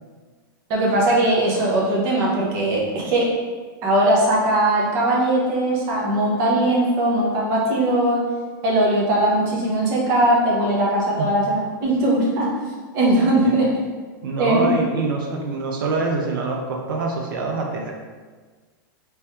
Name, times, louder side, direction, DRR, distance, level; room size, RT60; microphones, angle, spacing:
voice 1, 0.7-3.3 3.8-8.2 8.6-12.5 12.9-13.7 14.4-14.7, right 1 dB, 25° right, -4 dB, 0.6 m, -20 dB
voice 2, 14.2-17.9, right 3 dB, 70° right, 1 dB, 0.5 m, -25 dB
3.1 x 2.8 x 3.4 m, 1.4 s
supercardioid pair, 180°, 12 cm